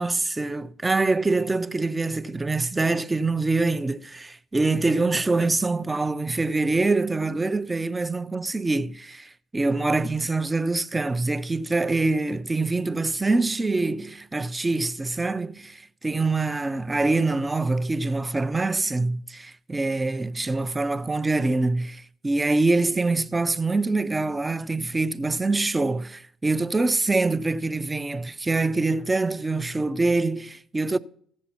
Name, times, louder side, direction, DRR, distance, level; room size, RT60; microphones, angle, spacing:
voice 1, 0.0-31.0, right 3 dB, 20° right, 0.5 m, -25 dB
14.5 x 7.2 x 4.3 m
hypercardioid pair, 55°, 0 cm